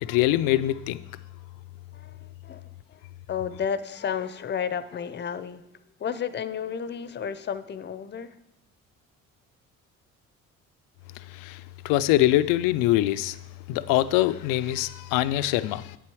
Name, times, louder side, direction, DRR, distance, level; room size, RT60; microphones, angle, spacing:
voice 1, 0.0-1.0 11.3-13.4 13.7-16.0, left 15 dB, 80° left, 0.5 m, -24 dB
voice 2, 1.9-5.6 6.0-8.4, left 7 dB, 30° left, 0.6 m, -32 dB
8.3 x 7.6 x 4.8 m
supercardioid pair, 70°, 33 cm